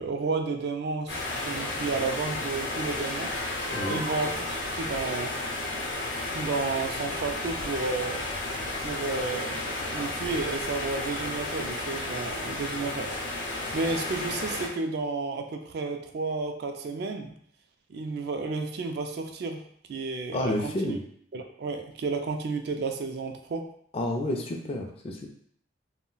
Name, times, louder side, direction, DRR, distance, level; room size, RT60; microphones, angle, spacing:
voice 1, 0.0-3.3 3.8-5.4 6.3-8.2 8.8-13.2 13.7-17.3 17.9-19.6 19.9-21.0 21.3-23.7, right 4 dB, 60° right, 5 dB, 0.3 m, -32 dB
sound 1, 1.1-14.7, left 2 dB, 70° left, 0.6 m, -32 dB
voice 2, 3.7-4.0 20.3-21.0 23.9-25.3, left 1 dB, 30° left, 2 dB, 0.4 m, -30 dB
2.3 x 2.1 x 3.8 m, 0.65 s
head